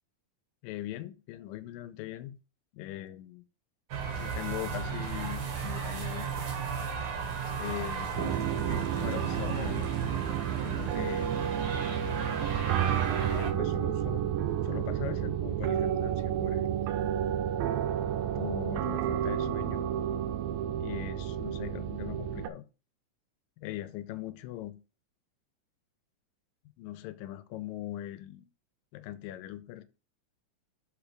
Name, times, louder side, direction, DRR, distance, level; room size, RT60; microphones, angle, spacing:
voice 1, 0.6-2.4 2.7-3.4 4.2-6.3 7.6-9.9 10.6-11.3 13.3-14.3 14.6-16.7 18.4-19.9 20.8-22.7 23.6-24.8 26.8-28.5 28.9-29.8, left 14 dB, 80° left, 2.3 m, -40 dB
sound 1, 3.9-13.5, right 5 dB, 55° right, 1.7 m, -34 dB
sound 2, 8.2-22.5, right 10 dB, 90° right, 2.5 m, -31 dB
6.1 x 4.9 x 5.0 m
omnidirectional pair, 4.1 m